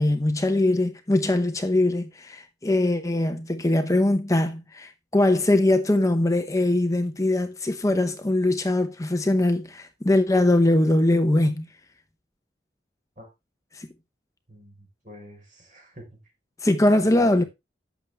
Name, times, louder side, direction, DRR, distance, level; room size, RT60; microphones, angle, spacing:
voice 1, 0.0-11.7 13.7-13.9 16.6-17.4, left 1 dB, 20° left, 0.7 m, -22 dB
voice 2, 14.5-16.2 17.0-17.4, equal, 45° right, 4.2 m, -46 dB
12.0 x 7.2 x 3.4 m
head